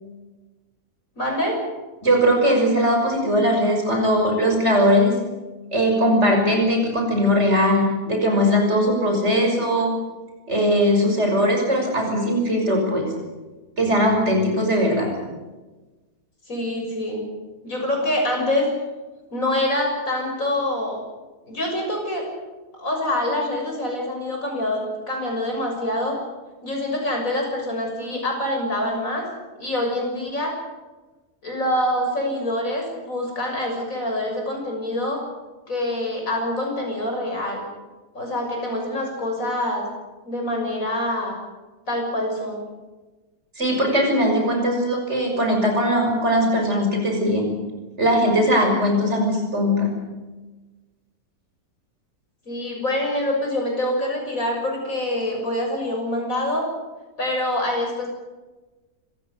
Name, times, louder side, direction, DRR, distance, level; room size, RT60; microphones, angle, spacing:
voice 1, 1.2-1.6 16.5-17.2 17.6-18.7 19.3-21.0 21.4-22.2 22.8-26.2 26.6-29.3 29.6-30.6 31.4-35.2 35.7-37.6 38.1-39.8 40.2-41.4 41.9-42.6 52.5-56.6 57.2-58.1, left 1 dB, 60° left, 1 dB, 7.2 m, -25 dB
voice 2, 2.0-5.1 5.7-9.9 10.5-13.0 13.8-15.1 43.6-47.5 48.0-49.9, equal, 45° right, 1 dB, 6.4 m, -20 dB
26.5 x 15.5 x 8.2 m, 1.2 s
omnidirectional pair, 1.6 m